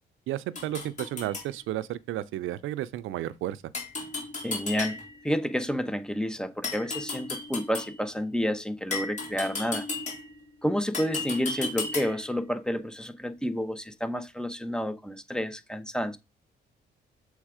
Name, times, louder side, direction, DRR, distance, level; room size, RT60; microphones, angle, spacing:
voice 1, 0.3-3.6, right 13 dB, 85° right, 0.5 m, -32 dB
sound 1, 0.5-1.5 3.7-5.3 6.6-8.0 8.9-10.4 10.9-12.3, left 3 dB, 35° left, 3.4 m, -35 dB
voice 2, 4.4-5.0 5.2-9.9 10.6-16.2, equal, 5° left, 0.8 m, -30 dB
7.3 x 3.4 x 4.8 m
cardioid pair, 90°, 20 cm